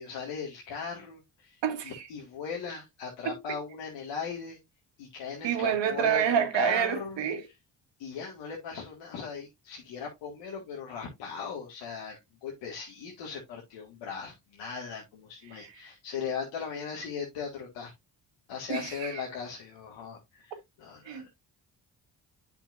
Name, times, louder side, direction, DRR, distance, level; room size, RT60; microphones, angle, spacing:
voice 1, 0.0-4.6 5.0-7.2 8.0-17.9 18.5-21.3, left 6 dB, 85° left, 2.1 m, -38 dB
voice 2, 1.6-2.1 3.2-3.4 5.4-7.5 15.5-15.7 18.7-19.2 21.1-21.3, right 8 dB, 80° right, 1.7 m, -28 dB
8.8 x 5.8 x 2.6 m
cardioid pair, 70°, 43 cm